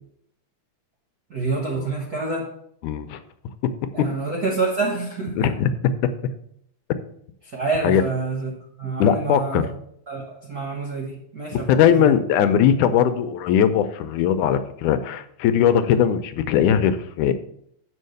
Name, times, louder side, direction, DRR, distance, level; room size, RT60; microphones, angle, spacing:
voice 1, 1.3-2.5 3.9-5.5 7.4-8.5 8.8-9.7 10.1-12.2, right 3 dB, 65° right, -1 dB, 0.9 m, -27 dB
voice 2, 2.8-3.2 3.6-3.7 4.0-4.1 5.4-5.7 6.0-6.1 7.8-8.0 9.0-9.7 11.5-17.3, left 9 dB, 80° left, 10 dB, 2.1 m, -19 dB
7.6 x 5.6 x 6.5 m, 0.71 s
omnidirectional pair, 3.6 m